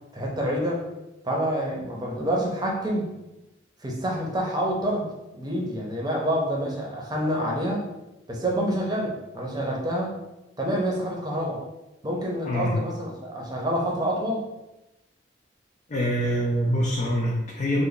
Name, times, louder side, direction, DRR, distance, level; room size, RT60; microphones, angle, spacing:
voice 1, 0.1-0.8 1.2-3.2 3.8-5.1 5.3-7.9 8.3-10.2 10.6-11.6 12.0-14.4, equal, 20° right, -2 dB, 0.7 m, -27 dB
voice 2, 12.5-12.8 15.9-17.9, equal, 40° left, -2 dB, 0.4 m, -25 dB
3.3 x 2.2 x 3.9 m, 0.96 s
head